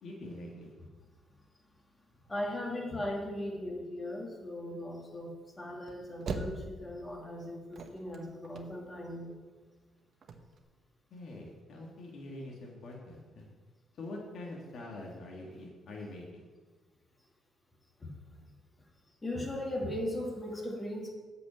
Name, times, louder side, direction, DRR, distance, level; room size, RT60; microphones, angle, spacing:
voice 1, 0.0-0.7 11.1-13.4 14.0-16.4, left 2 dB, 60° left, -1 dB, 1.7 m, -44 dB
voice 2, 2.3-9.3 18.0-18.1 19.2-21.1, left 1 dB, 25° left, -1 dB, 2.2 m, -38 dB
sound 1, 5.8-7.1 7.5-9.0 9.3-9.4 9.6-9.7 10.1-10.6, right 4 dB, 55° right, 0.9 m, -40 dB
8.1 x 5.3 x 7.3 m, 1.4 s
cardioid pair, 90°, 0 cm